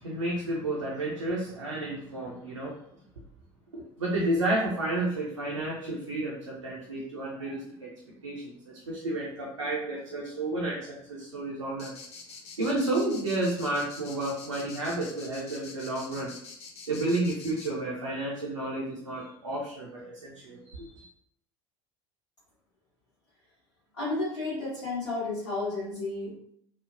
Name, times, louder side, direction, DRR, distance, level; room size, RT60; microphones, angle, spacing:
voice 1, 0.0-2.8 3.7-11.9 12.6-16.3 16.9-21.1, right 2 dB, 90° right, -4 dB, 0.5 m, -31 dB
sound 1, 11.8-17.7, left 5 dB, 45° left, 0.5 m, -45 dB
voice 2, 23.9-26.4, left 2 dB, 80° left, -11 dB, 1.0 m, -32 dB
3.0 x 2.1 x 2.4 m, 0.69 s
figure-of-eight pair, 65°, 15 cm